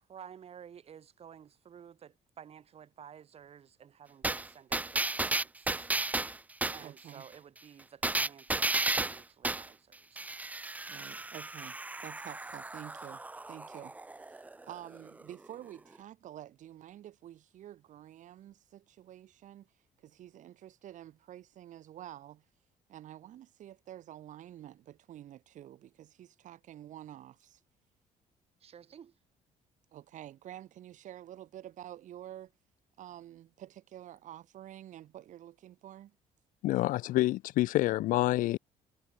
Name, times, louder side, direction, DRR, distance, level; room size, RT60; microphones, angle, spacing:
voice 1, 0.0-5.9 6.7-10.4 28.6-29.1, right 8 dB, 50° right, 2.2 m, -53 dB
sound 1, 4.2-6.8 8.0-9.7 10.2-15.3 15.7-15.8, right 2 dB, 10° right, 0.5 m, -34 dB
voice 2, 6.8-7.2 10.9-19.7 20.0-22.4 22.9-27.6 29.9-32.5 33.0-36.1, right 12 dB, 65° right, 1.7 m, -49 dB
voice 3, 36.6-38.6, left 16 dB, 80° left, 0.8 m, -27 dB
cardioid pair, 100°, 14 cm